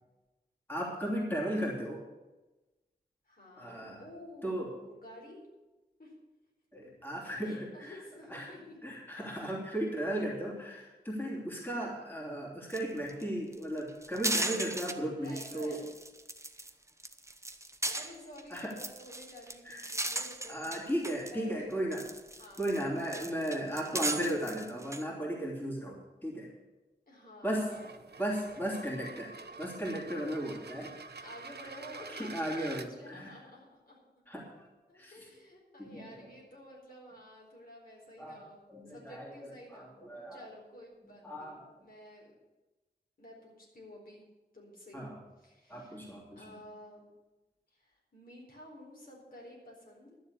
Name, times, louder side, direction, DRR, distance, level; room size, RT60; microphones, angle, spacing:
voice 1, 0.7-2.0 3.6-4.0 4.4-4.7 6.7-8.0 8.3-8.5 8.8-15.8 18.5-18.7 19.6-19.8 20.5-22.1 22.6-26.5 27.4-27.7 28.2-29.3 29.6-30.9 32.1-33.3 34.3-34.5 35.0-35.1 35.8-36.1 38.2-39.3 39.7-40.5 41.2-41.6 44.9-45.2 45.7-46.5, right 1 dB, 10° left, -3 dB, 2.9 m, -36 dB
voice 2, 3.3-5.5 6.0-6.1 7.4-8.8 15.2-15.9 17.8-20.8 21.3-21.8 22.4-22.7 27.1-27.9 31.2-34.0 34.9-38.6 38.9-40.0 40.3-42.3 43.2-44.2 44.5-45.0 45.4-46.0 46.4-47.1 47.7-50.2, equal, 60° left, -2 dB, 4.3 m, -51 dB
sound 1, 12.7-12.8 13.1-13.2 13.5-14.9 15.3-16.7 17.0-21.3 21.7-25.0, right 2 dB, 15° right, 0.9 m, -37 dB
sound 2, 27.6-32.9, right 4 dB, 75° right, 0.8 m, -47 dB
12.0 x 7.1 x 8.3 m, 1.1 s
wide cardioid pair, 80°, 17 cm